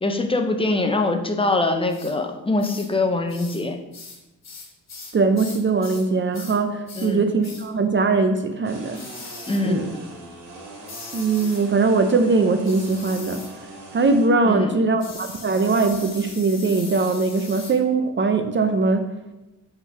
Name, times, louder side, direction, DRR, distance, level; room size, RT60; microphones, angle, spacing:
voice 1, 0.0-3.8 7.0-7.2 9.5-9.8 14.5-14.7, left 2 dB, 15° left, 5 dB, 0.7 m, -23 dB
sound 1, 1.9-2.1 2.6-2.9 3.3-3.6 3.9-6.1 6.3-6.6 6.9-7.1 7.4-7.7 8.9-9.6 10.9-11.7 12.6-13.5 15.0-17.8, left 4 dB, 55° left, 1.5 m, -40 dB
voice 2, 5.1-9.0 9.6-10.0 11.1-13.4 13.9-19.1, right 3 dB, 35° right, 7 dB, 0.5 m, -21 dB
chainsaw sawing long closer various longer cuts, 8.6-14.3, right 2 dB, 85° right, 1.8 m, -41 dB
5.6 x 3.9 x 5.4 m, 1.0 s
cardioid pair, 115°, 32 cm